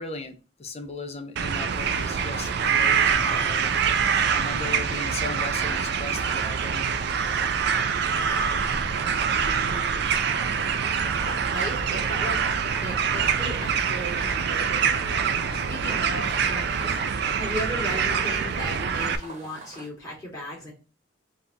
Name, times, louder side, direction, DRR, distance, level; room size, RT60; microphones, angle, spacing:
voice 1, 0.0-3.8 4.3-7.0, left 3 dB, 35° left, 7 dB, 0.6 m, -37 dB
sound 1, 1.4-19.2, right 6 dB, 60° right, 0.4 m, -25 dB
sound 2, 1.7-19.9, right 2 dB, 35° right, 1.1 m, -42 dB
voice 2, 11.5-20.7, equal, 20° left, -6 dB, 2.2 m, -36 dB
4.0 x 2.9 x 3.6 m, 0.32 s
head